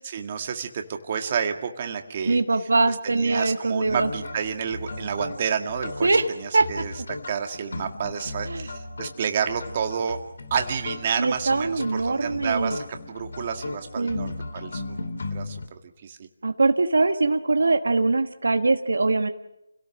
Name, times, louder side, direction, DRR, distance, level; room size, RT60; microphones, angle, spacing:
voice 1, 0.0-2.4 2.9-6.1 6.4-10.2 10.5-14.8 15.3-16.3, right 7 dB, 35° right, 5 dB, 1.9 m, -30 dB
voice 2, 2.2-4.1 6.0-6.3 6.5-6.7 8.5-8.7 11.2-12.8 14.0-14.2 16.4-19.3, right 3 dB, 75° right, 7 dB, 1.3 m, -22 dB
sound 1, 3.9-15.7, left 2 dB, 65° left, 2.5 m, -36 dB
29.0 x 17.5 x 6.4 m, 0.86 s
figure-of-eight pair, 160°, 0 cm